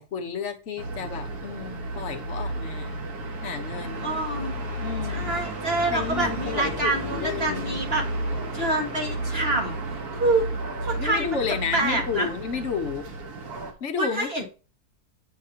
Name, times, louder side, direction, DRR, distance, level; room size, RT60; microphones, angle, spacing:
voice 1, 0.0-3.0 3.4-4.1 4.8-5.3 5.9-7.7 11.0-13.1 13.8-14.4, left 6 dB, 55° left, 6 dB, 1.2 m, -31 dB
sound 1, 0.8-13.7, right 1 dB, 80° right, 1.7 m, -32 dB
voice 2, 4.0-4.6 5.1-8.0 8.5-9.8 10.1-10.5 10.8-11.4 11.7-12.3 14.0-14.4, right 2 dB, 40° right, 1 dB, 2.0 m, -26 dB
8.4 x 5.8 x 2.8 m, 0.33 s
omnidirectional pair, 1.6 m